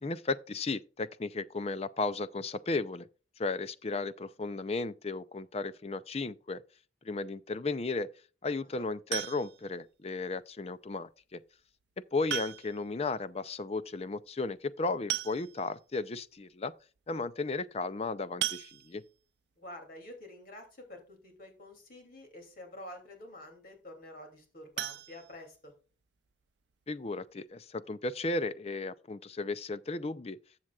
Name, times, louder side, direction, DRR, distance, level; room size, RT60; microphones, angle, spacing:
voice 1, 0.0-3.1 3.4-6.6 7.0-8.1 8.4-11.4 12.1-16.7 17.1-19.0 26.9-30.4, left 3 dB, 35° left, 0.5 m, -34 dB
sound 1, 9.1-9.7 11.2-11.3 12.3-12.9 13.2-13.3 13.6-13.7 14.7-14.8 15.1-15.8 16.4-16.5 16.8-17.0 18.4-19.2 24.7-25.9 26.3-26.4 26.8-26.9 27.3-27.4, right 12 dB, 65° right, 0.5 m, -37 dB
voice 2, 19.6-25.7, left 1 dB, 50° left, 2.7 m, -48 dB
14.0 x 7.4 x 2.4 m
head